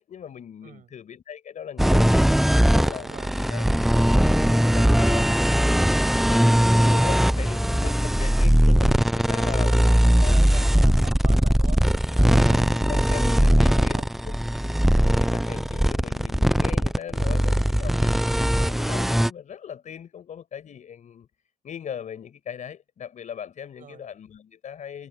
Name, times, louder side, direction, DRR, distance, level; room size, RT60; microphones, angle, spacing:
voice 1, 0.0-2.3 2.8-3.1 3.5-3.6 3.9-5.9 6.3-10.3 12.2-14.3 15.1-21.3 21.6-25.1, left 8 dB, 45° left, 5.6 m, -39 dB
voice 2, 0.6-0.9 2.9-3.4 9.3-11.8 12.1-14.1 23.8-24.0, right 9 dB, 50° right, 7.0 m, -44 dB
sound 1, 1.8-19.3, equal, ahead, 0.6 m, -20 dB
cardioid pair, 110°, 17 cm